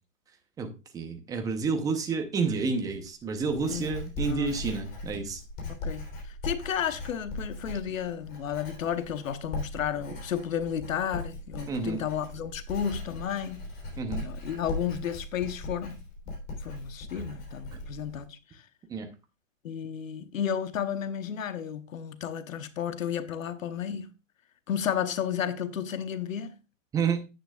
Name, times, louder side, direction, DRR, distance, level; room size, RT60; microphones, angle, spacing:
voice 1, 0.9-5.4 11.7-12.0 14.0-14.2 17.7-17.8 18.9-19.1 26.9-27.2, right 5 dB, 10° right, 0.7 m, -29 dB
Writing, 2.9-18.2, left 2 dB, 25° left, 3.4 m, -39 dB
voice 2, 5.7-13.6 14.1-16.0 16.6-18.6 19.6-24.1 24.7-26.5, left 8 dB, 80° left, 1.1 m, -32 dB
10.0 x 8.8 x 2.4 m
hypercardioid pair, 145°, 39 cm